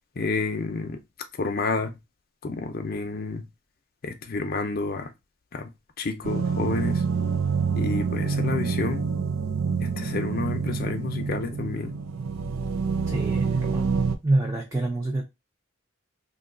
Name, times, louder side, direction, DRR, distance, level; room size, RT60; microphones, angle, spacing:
voice 1, 0.2-1.0 1.4-2.0 2.4-3.5 4.0-5.1 5.5-5.7 6.0-7.0 7.8-9.0 9.8-11.9, left 3 dB, 45° left, 0.6 m, -29 dB
sound 1, 6.2-14.2, right 5 dB, 85° right, 0.4 m, -27 dB
voice 2, 13.1-15.2, right 2 dB, 15° right, 0.5 m, -27 dB
2.7 x 2.3 x 3.7 m
head